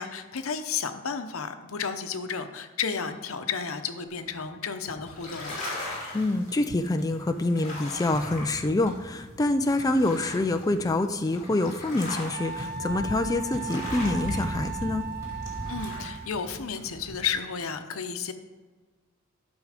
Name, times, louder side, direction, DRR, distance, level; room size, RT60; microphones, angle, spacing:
voice 1, 0.0-5.6 15.7-18.3, left 6 dB, 85° left, 8 dB, 0.8 m, -32 dB
sound 1, 4.0-4.5 4.9-5.9 6.2-6.7 6.9-10.8 11.1-13.2 13.5-14.4 14.6-17.5, equal, 15° right, 2.9 m, -44 dB
sound 2, 5.1-17.3, left 1 dB, 40° left, 2.9 m, -39 dB
voice 2, 6.1-15.0, left 2 dB, 15° left, 7 dB, 0.4 m, -26 dB
Wind instrument woodwind instrument, 12.3-16.4, right 6 dB, 50° right, 0.8 m, -37 dB
12.0 x 6.3 x 5.0 m, 1.4 s
head